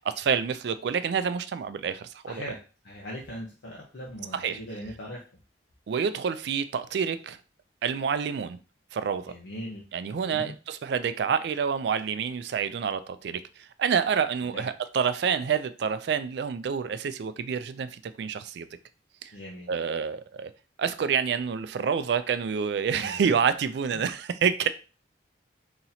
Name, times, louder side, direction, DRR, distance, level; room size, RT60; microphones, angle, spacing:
voice 1, 0.0-2.4 4.3-4.6 5.9-7.4 7.8-8.6 8.9-9.3 9.9-18.7 19.2-19.3 19.7-20.5 20.8-24.7, right 6 dB, 65° right, 0.3 m, -28 dB
voice 2, 2.3-5.2 9.2-10.6 14.5-14.6 19.3-19.7 23.0-23.4, equal, 90° left, 0.8 m, -40 dB
4.1 x 2.9 x 2.7 m
head